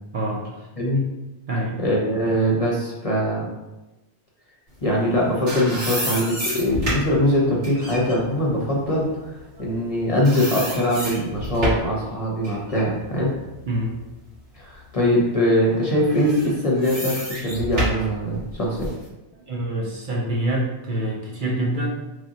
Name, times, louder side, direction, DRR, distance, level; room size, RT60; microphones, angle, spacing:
voice 1, 0.1-0.7 1.5-1.8 9.5-9.8 13.7-14.0 19.5-21.9, right 1 dB, 55° right, -2 dB, 0.7 m, -26 dB
voice 2, 1.8-3.5 4.8-13.3 14.5-18.9, equal, 40° left, -4 dB, 0.7 m, -22 dB
sound 1, 5.0-9.9 10.2-12.0 12.4-14.4 14.9-15.0 16.0-19.0, equal, 90° right, 1.8 m, -30 dB
3.2 x 2.7 x 3.7 m, 1.0 s
omnidirectional pair, 1.2 m